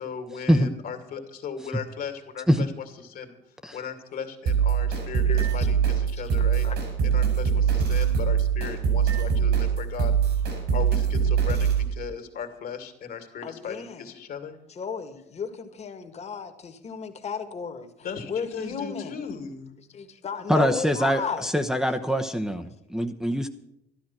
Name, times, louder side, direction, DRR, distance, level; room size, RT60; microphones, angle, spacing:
voice 1, 0.0-3.4 3.7-5.3 5.5-6.7 7.0-10.2 10.7-14.6 18.0-19.8, left 6 dB, 60° left, 6 dB, 2.5 m, -37 dB
sound 1, 4.5-11.8, right 7 dB, 80° right, 6.2 m, -23 dB
voice 2, 5.3-5.7 6.6-6.8 13.4-14.1 14.7-17.9 18.3-19.2 19.9-21.5, left 6 dB, 40° left, 7 dB, 1.8 m, -34 dB
voice 3, 20.5-23.5, equal, 5° right, 4 dB, 0.9 m, -23 dB
13.0 x 12.0 x 6.0 m, 0.84 s
cardioid pair, 110°, 17 cm